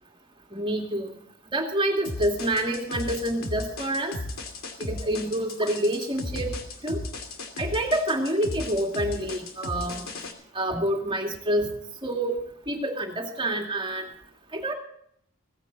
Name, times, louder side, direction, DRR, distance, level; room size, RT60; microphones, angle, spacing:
voice 1, 0.5-1.2 1.5-4.1 4.8-6.6 6.8-7.0 7.6-10.0 10.5-11.7 12.0-12.4 12.7-14.1 14.5-14.7, right 1 dB, 25° right, 2 dB, 2.4 m, -27 dB
sound 1, 2.0-10.3, left 2 dB, 85° left, 2.6 m, -35 dB
17.0 x 15.5 x 4.0 m, 0.66 s
head